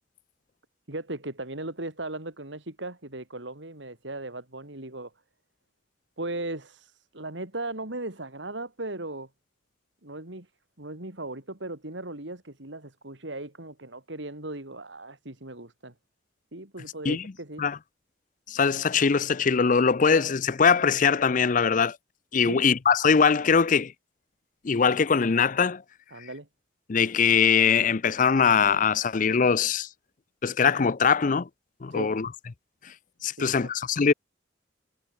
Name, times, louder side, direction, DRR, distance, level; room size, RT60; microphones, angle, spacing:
voice 1, 0.9-5.1 6.2-9.3 10.0-10.5 10.8-15.9 16.5-17.6 22.5-22.7 26.1-26.5 31.9-32.1 33.4-33.7, right 2 dB, 75° right, 3.7 m, -37 dB
voice 2, 18.5-22.0 22.3-23.9 24.6-25.8 26.9-29.9 30.4-31.5 31.8-32.3 33.2-34.1, left 6 dB, 45° left, 0.5 m, -22 dB
head